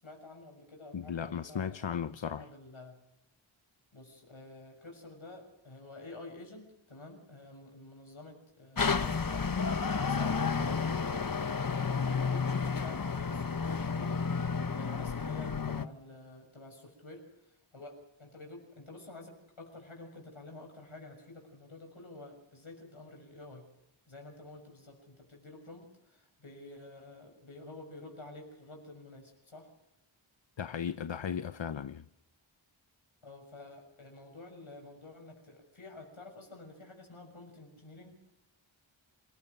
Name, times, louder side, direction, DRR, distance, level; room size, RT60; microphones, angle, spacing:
voice 1, 0.0-3.0 3.9-11.0 12.3-17.2 17.7-23.7 24.1-29.7 33.2-38.2, left 2 dB, 80° left, 6.5 m, -50 dB
voice 2, 0.9-2.4 30.6-32.0, left 7 dB, 65° left, 0.8 m, -36 dB
sound 1, 8.8-15.9, left 5 dB, 45° left, 1.0 m, -31 dB
27.5 x 15.5 x 6.7 m
wide cardioid pair, 40°, 48 cm